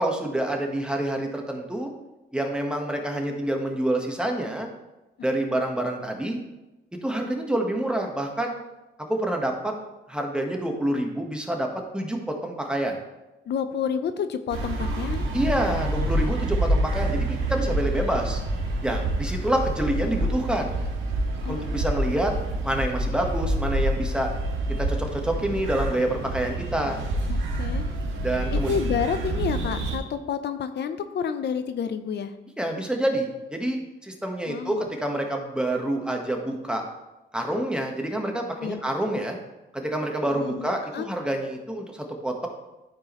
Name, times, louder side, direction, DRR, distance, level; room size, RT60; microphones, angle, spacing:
voice 1, 0.0-1.9 2.3-4.7 5.2-6.4 6.9-8.5 9.0-9.7 10.1-13.0 15.3-18.4 18.8-20.7 21.5-22.3 22.6-24.3 24.8-27.0 28.2-28.7 32.6-36.8 37.3-39.4 39.7-42.5, right 1 dB, 5° right, 2 dB, 1.4 m, -27 dB
voice 2, 13.5-15.3 21.4-21.8 27.3-27.9 28.5-32.4 34.5-34.9 38.6-38.8 40.3-41.1, left 7 dB, 60° left, 10 dB, 0.7 m, -30 dB
sound 1, 14.5-30.0, right 1 dB, 75° right, 1.7 m, -27 dB
12.0 x 4.7 x 3.1 m, 1.0 s
cardioid pair, 90°, 20 cm